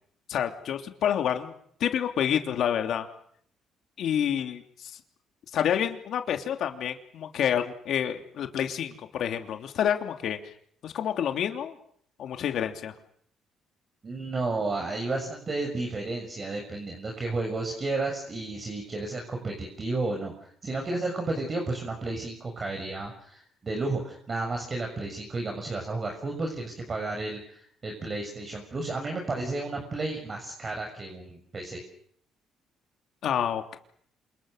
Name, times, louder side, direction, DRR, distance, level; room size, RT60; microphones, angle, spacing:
voice 1, 0.3-1.5 1.8-3.1 4.0-4.9 5.5-10.5 10.8-11.7 12.2-12.9 33.2-33.8, left 9 dB, 65° left, 5 dB, 3.0 m, -28 dB
voice 2, 14.0-31.8, right 2 dB, 35° right, 2 dB, 6.8 m, -32 dB
28.0 x 27.5 x 6.6 m, 0.64 s
cardioid pair, 100°, 0 cm